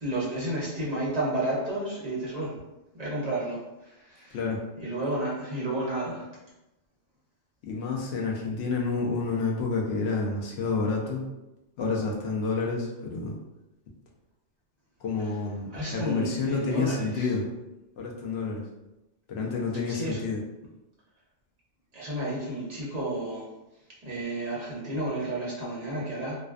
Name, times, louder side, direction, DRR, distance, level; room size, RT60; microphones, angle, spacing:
voice 1, 0.0-2.5 2.9-3.6 4.1-4.3 4.8-6.3 15.7-17.3 19.9-20.2 21.9-23.5 24.0-26.4, right 1 dB, 40° right, -6 dB, 0.6 m, -31 dB
voice 2, 7.6-11.2 11.8-13.3 15.0-17.4 18.0-18.6 19.3-20.4, left 4 dB, 65° left, -1 dB, 0.8 m, -29 dB
2.5 x 2.2 x 2.3 m, 0.99 s
omnidirectional pair, 1.3 m